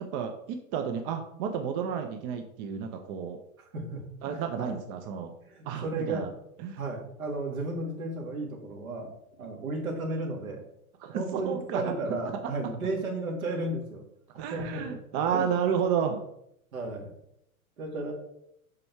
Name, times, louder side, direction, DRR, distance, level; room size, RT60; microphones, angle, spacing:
voice 1, 0.0-3.4 4.2-5.3 5.6-6.3 6.6-6.8 11.0-12.1 14.4-16.2, right 7 dB, 30° right, 5 dB, 0.7 m, -31 dB
voice 2, 3.6-4.7 5.5-6.3 6.8-9.1 9.4-10.7 11.1-14.0 14.3-15.7 16.7-17.1 17.8-18.1, right 2 dB, 70° right, 1 dB, 2.2 m, -34 dB
6.0 x 4.9 x 4.6 m, 0.76 s
figure-of-eight pair, 105°, 44 cm